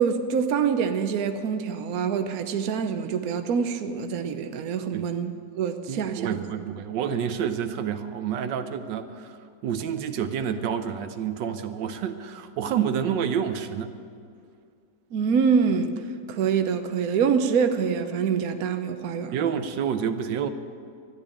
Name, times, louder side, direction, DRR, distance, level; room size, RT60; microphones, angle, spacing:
voice 1, 0.0-6.4 15.1-16.0 16.3-19.5, right 6 dB, 60° right, 8 dB, 1.2 m, -25 dB
voice 2, 5.9-9.4 9.6-13.9 19.3-20.5, right 8 dB, 85° right, 9 dB, 1.4 m, -28 dB
13.5 x 10.5 x 8.5 m, 2.3 s
omnidirectional pair, 1.9 m